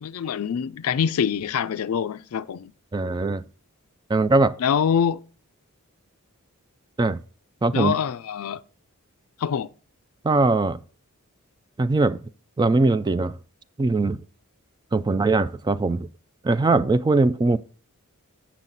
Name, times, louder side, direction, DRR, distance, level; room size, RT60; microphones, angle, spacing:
voice 1, 0.0-2.7 4.6-5.2 7.7-8.6 9.4-9.7, left 7 dB, 70° left, 0.4 m, -25 dB
voice 2, 2.9-3.4 4.1-4.6 7.0-7.2 7.6-7.9 10.2-10.8 11.8-12.2 12.6-13.4 13.8-14.2 14.9-16.1 16.4-17.6, right 3 dB, 20° right, 0.3 m, -21 dB
7.4 x 7.2 x 3.9 m
head